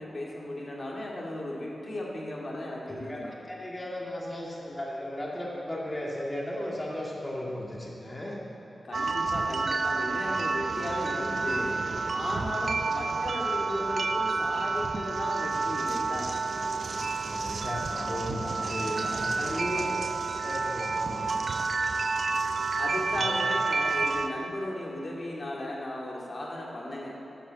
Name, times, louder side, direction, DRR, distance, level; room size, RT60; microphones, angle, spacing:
voice 1, 0.0-3.3 8.8-11.8 12.1-16.3 19.4-19.8 22.8-27.2, left 1 dB, 45° left, -3 dB, 2.1 m, -36 dB
voice 2, 2.9-8.4 12.3-12.5 17.2-20.1 20.4-21.3 22.8-22.9 23.2-23.3, left 1 dB, 20° left, -4 dB, 1.8 m, -36 dB
sound 1, 8.9-24.3, right 4 dB, 65° right, 0.6 m, -29 dB
10.5 x 10.0 x 7.4 m, 2.9 s
wide cardioid pair, 100°, 0 cm